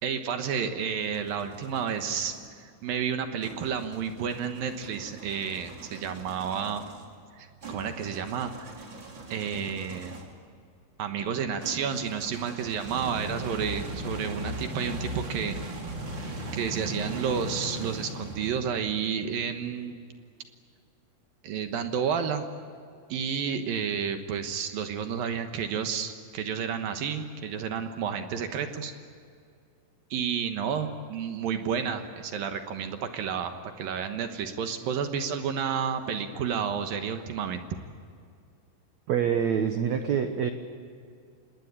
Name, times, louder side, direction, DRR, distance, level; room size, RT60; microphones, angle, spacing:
voice 1, 0.0-6.8 7.4-8.7 9.3-10.2 11.0-15.6 16.5-20.0 21.4-22.5 23.1-28.9 30.1-37.7, right 7 dB, 65° right, 7 dB, 2.7 m, -31 dB
sound 1, 0.9-2.5 3.4-10.4 11.6-18.9, right 1 dB, 30° right, 2.9 m, -39 dB
voice 2, 39.1-40.5, right 8 dB, 85° right, 7 dB, 1.5 m, -26 dB
27.0 x 20.0 x 8.6 m, 2.3 s
omnidirectional pair, 5.0 m